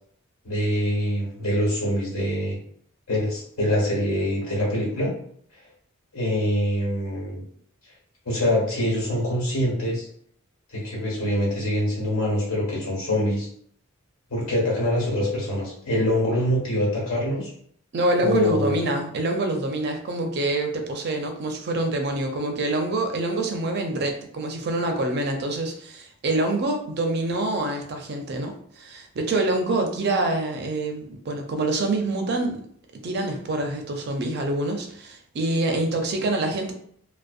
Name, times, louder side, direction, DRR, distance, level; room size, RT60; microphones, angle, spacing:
voice 1, 0.4-2.6 3.1-5.1 6.1-7.4 8.2-10.0 10.7-13.5 14.3-17.5 18.2-18.8, left 1 dB, 80° left, -5 dB, 1.4 m, -24 dB
voice 2, 17.9-32.6 33.0-36.7, right 2 dB, 50° right, 4 dB, 0.4 m, -26 dB
2.6 x 2.0 x 2.4 m, 0.62 s
head